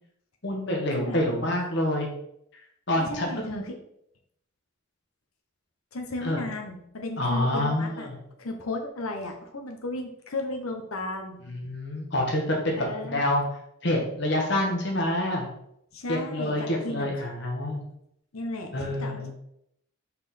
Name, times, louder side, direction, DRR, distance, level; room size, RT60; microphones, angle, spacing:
voice 1, 0.4-2.1 2.9-3.6 6.2-6.4 7.2-8.1 11.5-12.8 13.0-13.4 13.8-15.5 16.1-17.8 18.7-19.3, left 1 dB, 55° left, 0 dB, 1.3 m, -27 dB
voice 2, 2.9-3.7 5.9-8.1 8.4-11.4 12.8-13.2 15.9-17.3 18.3-19.3, left 2 dB, 85° left, 4 dB, 1.0 m, -35 dB
5.3 x 4.3 x 4.3 m, 0.74 s
head